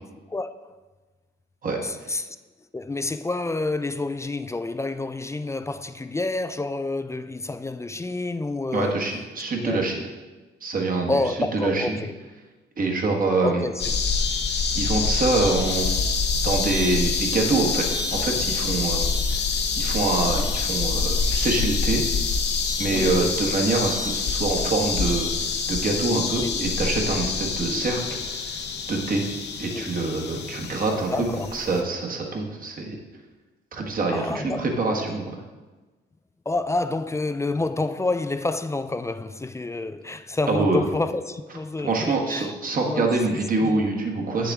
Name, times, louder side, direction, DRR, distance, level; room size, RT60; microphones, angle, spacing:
voice 1, 0.3-0.7 1.8-2.4 2.7-9.1 9.5-9.8 11.1-12.1 13.4-13.9 22.9-23.3 26.3-26.7 27.6-27.9 29.7-29.8 31.1-31.5 34.1-34.8 36.5-42.5 42.9-43.1 43.6-43.8, left 2 dB, 15° left, 0.3 m, -28 dB
voice 2, 8.7-10.0 10.6-11.2 11.5-12.0 12.8-13.6 14.7-15.9 16.4-19.0 19.3-19.4 19.8-22.0 22.8-28.0 28.3-28.6 28.9-29.3 29.6-31.1 31.5-33.0 33.7-35.3 40.5-40.8 41.8-44.5, right 3 dB, 45° right, 1.5 m, -25 dB
sound 1, 13.8-31.8, left 5 dB, 60° left, 0.8 m, -26 dB
8.1 x 6.7 x 3.6 m
cardioid pair, 90°, 20 cm